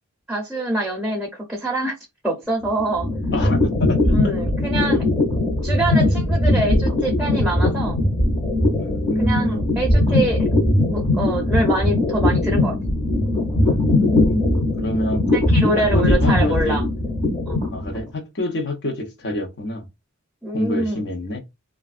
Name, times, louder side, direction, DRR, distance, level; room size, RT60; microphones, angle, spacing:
voice 1, 0.3-1.9 2.2-3.1 4.1-5.0 5.6-8.0 9.2-10.5 10.9-12.8 15.3-16.8 17.5-17.6 20.4-21.1, right 1 dB, ahead, 0.7 m, -25 dB
sound 1, 2.6-18.1, left 1 dB, 25° left, 0.9 m, -20 dB
voice 2, 3.3-4.3 8.8-9.7 13.6-15.2 15.8-16.8 17.7-19.9 20.5-21.4, left 1 dB, 55° left, 0.7 m, -26 dB
3.2 x 2.4 x 2.4 m
head